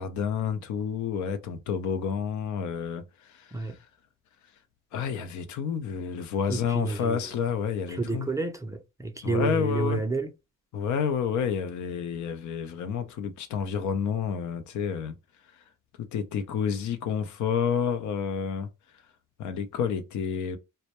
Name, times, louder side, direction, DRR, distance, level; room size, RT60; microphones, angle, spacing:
voice 1, 0.0-3.5 4.9-8.3 9.2-10.0 10.7-15.1 16.1-18.7 19.4-20.6, left 7 dB, 70° left, 0.6 m, -29 dB
voice 2, 6.5-7.3 7.9-10.3, right 2 dB, 10° right, 0.4 m, -30 dB
2.1 x 2.1 x 2.8 m
cardioid pair, 90°, 30 cm